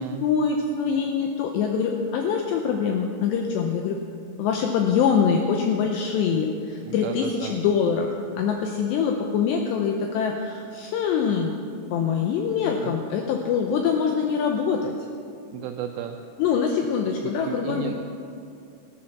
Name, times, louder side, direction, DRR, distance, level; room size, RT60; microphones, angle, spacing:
voice 1, 0.0-4.0 4.4-8.1 8.4-11.5 11.9-14.9 16.4-17.9, left 6 dB, 90° left, 3 dB, 2.4 m, -24 dB
voice 2, 6.9-7.6 12.8-12.9 15.5-16.2 17.2-17.9, right 10 dB, 80° right, 4 dB, 3.0 m, -33 dB
14.5 x 13.0 x 5.9 m, 2.4 s
omnidirectional pair, 5.9 m